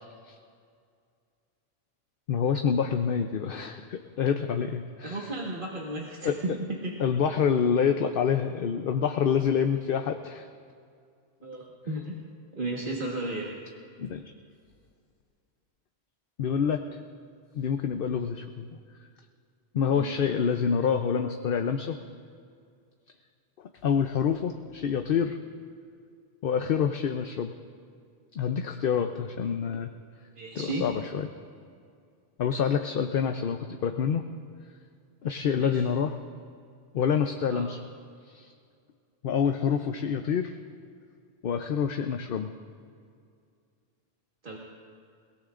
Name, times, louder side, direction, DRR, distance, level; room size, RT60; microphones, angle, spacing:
voice 1, 2.3-5.3 6.2-6.4 7.0-10.4 14.0-14.2 16.4-16.8 17.5-18.7 19.7-22.0 23.8-25.4 26.4-27.5 28.3-29.9 30.5-31.3 32.4-34.2 35.2-36.1 36.9-37.8 38.3-38.5 39.2-40.5 41.4-42.5, left 7 dB, 60° left, 6 dB, 0.8 m, -27 dB
voice 2, 5.0-6.9 11.4-12.2 12.5-13.6 19.9-20.1 30.4-30.9 35.5-35.8 37.5-37.6 44.4-44.6, right 2 dB, 50° right, -3 dB, 1.7 m, -34 dB
29.0 x 17.5 x 2.5 m, 2.3 s
omnidirectional pair, 1.1 m